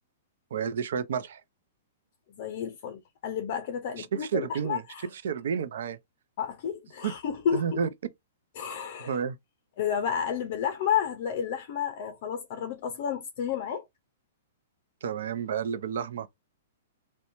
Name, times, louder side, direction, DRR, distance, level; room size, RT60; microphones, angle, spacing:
voice 1, 0.5-1.4 4.0-4.8 5.1-6.0 7.0-7.1 7.5-7.9 9.1-9.4 15.0-16.3, right 7 dB, 70° right, 0.4 m, -30 dB
voice 2, 2.4-5.1 6.4-7.8 8.6-9.2 9.8-13.8, left 8 dB, 45° left, 0.5 m, -31 dB
2.9 x 2.1 x 2.5 m
hypercardioid pair, 160°, 0 cm